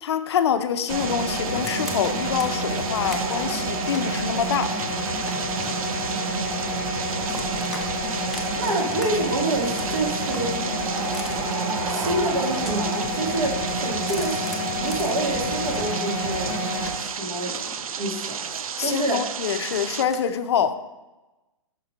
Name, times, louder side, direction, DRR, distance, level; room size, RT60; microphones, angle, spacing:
voice 1, 0.0-4.7 18.8-20.8, left 8 dB, 50° left, 10 dB, 0.5 m, -25 dB
sound 1, 0.8-2.5 2.8-4.1 4.6-6.7 7.0-7.9 8.1-9.0 9.3-11.6 12.3-13.2 13.5-15.9 16.2-19.1 19.4-20.2, equal, ahead, 0.4 m, -41 dB
sound 2, 0.9-16.9, equal, 25° right, 1.2 m, -28 dB
sound 3, 0.9-20.1, right 7 dB, 90° right, 0.5 m, -33 dB
voice 2, 8.6-10.6 11.9-14.5 14.8-16.6 17.1-17.5 18.0-18.4 18.8-19.2, right 2 dB, 65° right, 1 dB, 2.0 m, -27 dB
5.9 x 4.3 x 5.0 m, 1.1 s
hypercardioid pair, 155°, 18 cm